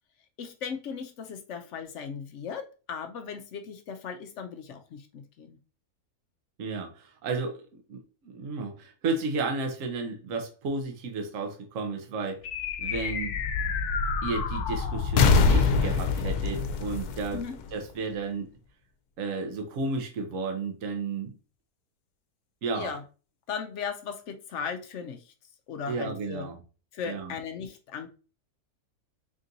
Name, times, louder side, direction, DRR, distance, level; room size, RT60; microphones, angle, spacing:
voice 1, 0.4-5.6 17.3-17.5 22.7-23.0 23.5-25.3 25.7-26.5 26.9-28.1, left 6 dB, 65° left, 0.8 m, -37 dB
voice 2, 6.6-7.6 7.9-12.4 12.8-13.3 14.2-17.4 17.7-18.5 19.2-21.3 22.6-22.9 25.9-26.6 27.0-27.3, right 3 dB, 65° right, 1.1 m, -32 dB
sound 1, 12.4-18.1, left 5 dB, 85° left, 1.1 m, -26 dB
3.9 x 3.7 x 2.6 m
omnidirectional pair, 1.6 m